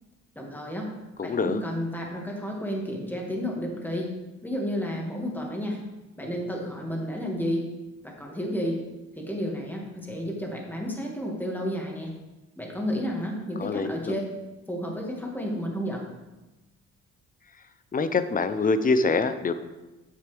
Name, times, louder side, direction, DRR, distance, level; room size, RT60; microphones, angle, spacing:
voice 1, 0.4-0.9 1.2-4.1 4.4-5.8 6.2-7.7 8.0-8.8 9.2-12.1 12.6-14.2 14.7-16.0, equal, 5° left, -1 dB, 2.1 m, -31 dB
voice 2, 1.2-1.6 13.6-14.2 17.9-19.5, left 3 dB, 30° left, 11 dB, 0.7 m, -25 dB
9.6 x 7.2 x 3.5 m, 1.1 s
cardioid pair, 90°, 30 cm